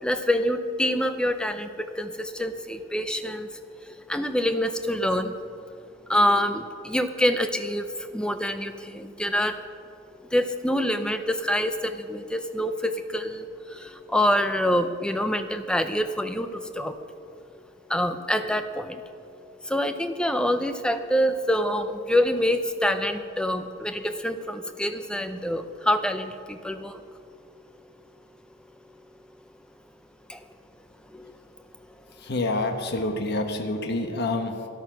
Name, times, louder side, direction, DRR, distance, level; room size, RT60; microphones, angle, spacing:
voice 1, 0.0-1.7 1.9-3.5 3.8-5.3 6.1-9.6 10.3-17.0 17.9-19.0 19.6-27.0 30.3-30.4 31.1-31.3, equal, 5° left, 8 dB, 0.5 m, -26 dB
voice 2, 32.1-34.7, left 2 dB, 50° left, 4 dB, 1.0 m, -28 dB
13.0 x 11.5 x 6.0 m, 2.5 s
head